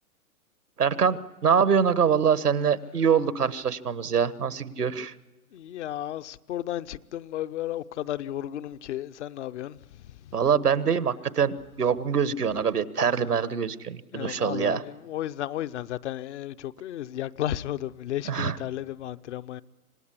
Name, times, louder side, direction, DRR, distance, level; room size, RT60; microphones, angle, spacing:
voice 1, 0.8-5.1 10.3-14.8 18.3-18.5, right 7 dB, 90° right, 1.4 m, -24 dB
voice 2, 5.5-10.4 14.1-19.6, left 12 dB, 50° left, 0.8 m, -34 dB
26.5 x 18.5 x 9.9 m
hypercardioid pair, 120°, 45 cm